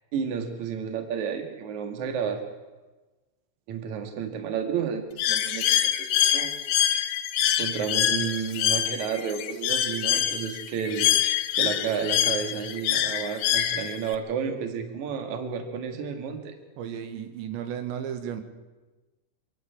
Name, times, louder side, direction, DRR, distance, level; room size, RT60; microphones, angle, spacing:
voice 1, 0.1-2.4 3.7-6.5 7.6-16.5, right 7 dB, 50° right, 6 dB, 2.8 m, -31 dB
Bird, 5.2-14.2, left 11 dB, 75° left, 1.9 m, -25 dB
voice 2, 16.8-18.4, right 9 dB, 90° right, 8 dB, 3.7 m, -34 dB
26.0 x 11.5 x 8.6 m, 1.2 s
omnidirectional pair, 5.0 m